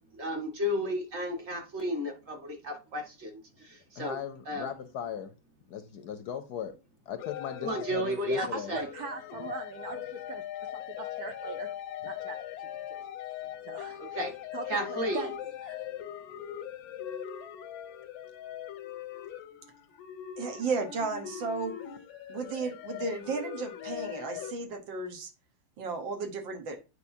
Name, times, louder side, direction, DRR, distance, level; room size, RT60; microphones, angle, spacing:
voice 1, 0.2-3.3 3.6-4.2 4.5-4.7 7.6-8.8 14.0-14.3 14.7-15.3, equal, 35° right, 1.8 m, -32 dB
voice 2, 4.0-5.3 5.7-6.7 7.1-8.8, left 8 dB, 70° left, 1.0 m, -38 dB
sound 1, 7.2-24.5, left 11 dB, 90° left, 1.4 m, -41 dB
voice 3, 8.4-10.4 10.7-11.7 12.0-12.7 13.7-14.0 14.5-15.3 15.6-15.9, right 5 dB, 60° right, 1.1 m, -40 dB
voice 4, 20.4-21.7 22.3-25.3 25.8-26.8, right 4 dB, 80° right, 1.9 m, -34 dB
8.4 x 4.7 x 2.7 m
omnidirectional pair, 2.1 m